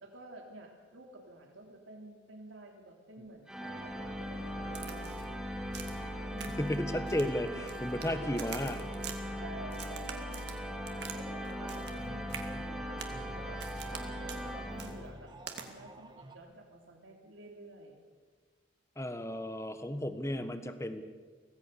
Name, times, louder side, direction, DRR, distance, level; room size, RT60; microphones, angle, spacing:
voice 1, 0.0-5.4 6.3-6.8 8.0-8.5 9.0-10.6 11.1-13.6 13.9-15.3 15.6-18.0, right 2 dB, 90° right, 2 dB, 3.4 m, -51 dB
sound 1, 3.5-15.4, equal, 5° right, 2.2 m, -39 dB
Crack, 4.7-5.3 5.7-6.1 6.4-6.8 7.1-8.1 8.4-9.2 9.7-11.2 11.4-12.0 12.3-12.5 13.0-13.2 13.6-14.0 14.3-14.4 14.8-14.9 15.5-15.7, right 8 dB, 60° right, 2.2 m, -45 dB
voice 2, 6.6-8.8 19.0-21.0, left 1 dB, 15° left, 10 dB, 1.3 m, -34 dB
sound 2, 11.2-16.4, right 1 dB, 25° right, 1.5 m, -52 dB
25.0 x 17.5 x 6.9 m, 1.5 s
head